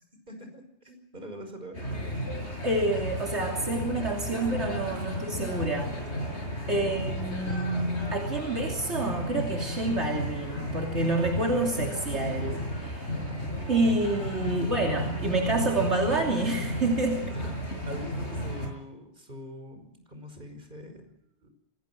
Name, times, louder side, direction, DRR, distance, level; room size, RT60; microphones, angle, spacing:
voice 1, 0.3-2.2 6.6-7.3 13.1-13.7 14.4-14.8 17.3-21.5, left 1 dB, 45° right, 6 dB, 5.6 m, -44 dB
sound 1, 1.7-18.7, equal, 75° left, 6.9 m, -33 dB
voice 2, 2.6-6.0 6.7-13.1 13.7-17.3, right 2 dB, 75° right, 1 dB, 3.3 m, -28 dB
25.5 x 20.5 x 6.0 m, 0.79 s
omnidirectional pair, 1.2 m